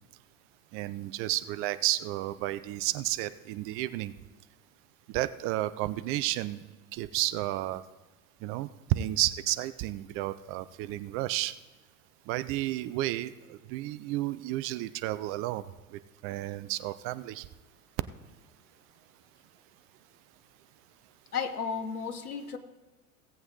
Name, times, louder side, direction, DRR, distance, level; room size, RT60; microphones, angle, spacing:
voice 1, 0.7-4.1 5.1-6.6 6.9-7.8 8.4-11.5 12.3-15.6 15.9-17.5, right 16 dB, 30° right, 14 dB, 0.4 m, -32 dB
voice 2, 21.3-22.6, left 6 dB, 80° left, 9 dB, 1.1 m, -33 dB
17.0 x 7.8 x 3.8 m, 1.3 s
figure-of-eight pair, 85°, 44 cm